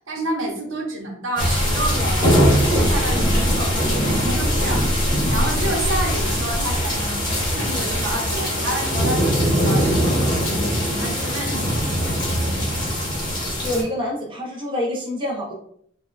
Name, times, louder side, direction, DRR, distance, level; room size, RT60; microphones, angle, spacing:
voice 1, 0.1-2.3 2.7-11.8, right 1 dB, 90° right, -1 dB, 0.8 m, -29 dB
sound 1, 1.4-13.8, equal, 25° left, 0.8 m, -21 dB
voice 2, 13.6-15.5, left 1 dB, 25° right, -2 dB, 0.6 m, -26 dB
3.4 x 2.2 x 2.2 m, 0.66 s
head